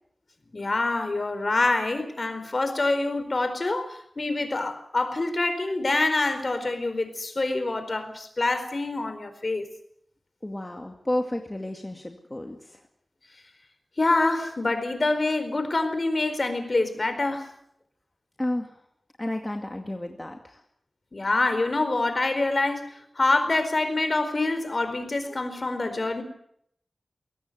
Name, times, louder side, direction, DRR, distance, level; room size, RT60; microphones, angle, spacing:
voice 1, 0.5-9.7 14.0-17.5 21.1-22.9 23.2-26.2, left 2 dB, 50° left, 9 dB, 4.4 m, -26 dB
voice 2, 10.4-12.8 18.4-18.8 19.2-20.6, left 1 dB, 25° left, 3 dB, 2.2 m, -32 dB
22.5 x 18.0 x 7.9 m, 0.69 s
wide cardioid pair, 65°, 0 cm